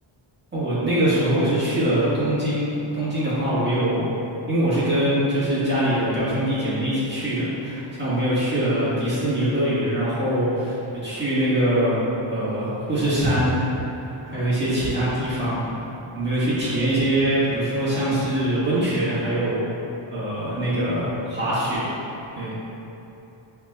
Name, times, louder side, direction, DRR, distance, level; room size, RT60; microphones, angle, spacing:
voice 1, 0.5-4.1 4.5-10.8 11.0-12.0 12.3-13.7 14.1-15.6 16.1-19.6 20.1-21.8 22.3-22.5, right 1 dB, 20° right, -11 dB, 1.5 m, -23 dB
5.5 x 3.4 x 2.2 m, 2.9 s
wide cardioid pair, 140°, 50 cm